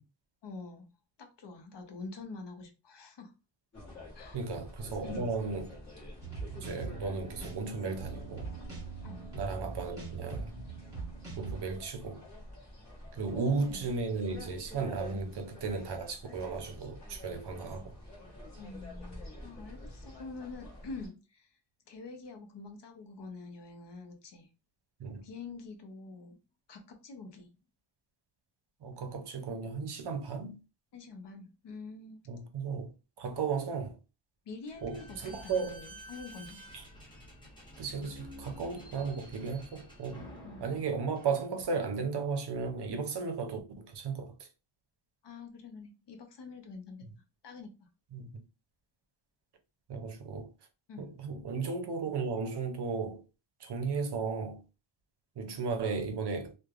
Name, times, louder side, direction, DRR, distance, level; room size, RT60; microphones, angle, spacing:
voice 1, 0.4-0.9 1.2-3.3 4.1-4.4 5.0-5.3 9.0-9.3 13.3-13.9 15.1-15.3 18.6-21.5 21.9-24.5 25.2-26.4 26.7-27.5 30.9-32.2 34.5-36.6 40.4-40.6 45.2-47.1 47.4-47.9 50.9-51.1, left 4 dB, 55° left, 0.7 m, -46 dB
sound 1, 3.7-21.1, left 1 dB, 35° left, 1.2 m, -48 dB
voice 2, 4.3-5.8 6.6-8.5 9.3-10.5 11.4-12.2 13.1-18.0 25.0-25.2 28.8-30.6 32.3-32.9 33.2-34.0 34.8-35.8 36.7-36.8 37.8-40.2 40.6-44.5 48.1-48.3 49.9-50.5 51.0-53.2 53.6-54.6 55.4-56.6, right 4 dB, 55° right, 0.6 m, -35 dB
sound 2, 6.2-11.6, right 4 dB, 5° right, 1.4 m, -42 dB
Slam / Squeak, 34.7-41.9, equal, 10° left, 0.8 m, -50 dB
3.1 x 2.2 x 2.4 m
wide cardioid pair, 170°, 50 cm